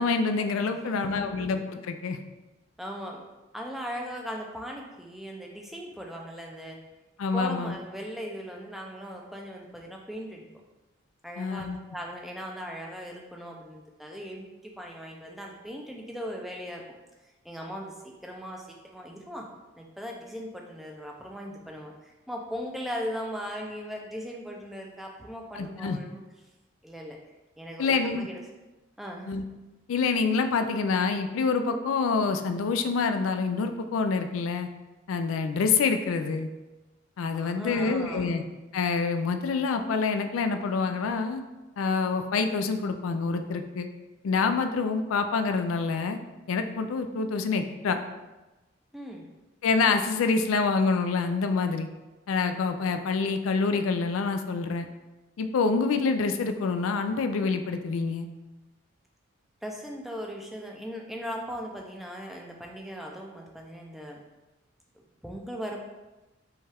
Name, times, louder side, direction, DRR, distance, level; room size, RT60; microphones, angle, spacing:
voice 1, 0.0-2.2 7.2-7.7 11.4-11.8 25.5-26.0 27.8-28.3 29.3-29.4 29.9-34.7 35.1-36.5 37.2-38.4 38.7-41.4 41.8-43.9 44.2-46.2 46.5-48.0 49.6-51.9 52.3-54.9 55.4-58.3, left 4 dB, 90° left, 8 dB, 0.4 m, -26 dB
voice 2, 0.8-1.5 2.8-3.2 3.5-6.8 7.3-10.5 11.2-16.8 17.4-18.7 18.9-19.5 19.7-26.2 26.8-27.2 27.6-28.4 29.0-29.3 37.3-38.4 48.9-49.3 59.6-64.2 65.2-65.8, equal, ahead, 0 dB, 0.4 m, -38 dB
5.3 x 2.3 x 3.3 m, 1.1 s
head